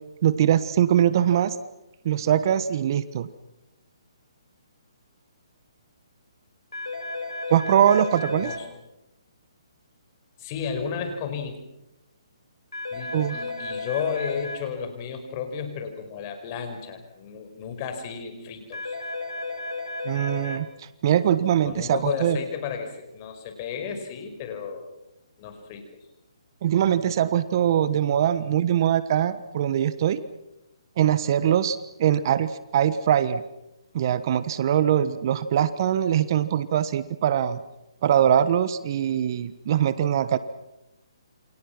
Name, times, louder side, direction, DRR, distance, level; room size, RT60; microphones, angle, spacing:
voice 1, 0.2-1.6 2.0-3.3 7.5-8.5 13.1-13.4 20.0-20.7 21.0-22.4 26.6-30.2 31.0-33.4 33.9-37.6 38.0-40.4, right 10 dB, 45° right, 14 dB, 1.3 m, -22 dB
sound 1, 6.7-8.6 12.7-14.6 18.7-20.6, left 2 dB, 90° left, 7.8 m, -33 dB
voice 2, 10.4-11.6 12.9-19.0 21.6-24.9 25.4-25.8, left 6 dB, 35° left, 6 dB, 5.4 m, -33 dB
28.5 x 26.0 x 6.0 m, 0.90 s
hypercardioid pair, 145°, 3 cm